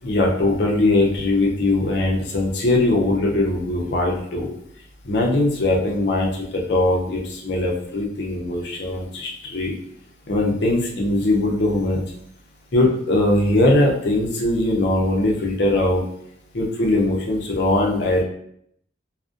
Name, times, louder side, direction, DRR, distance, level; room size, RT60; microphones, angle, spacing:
voice 1, 0.0-4.5 5.0-9.7 10.3-12.0 12.7-16.0 16.5-18.2, left 2 dB, 60° left, -1 dB, 0.5 m, -20 dB
2.4 x 2.1 x 2.4 m, 0.69 s
head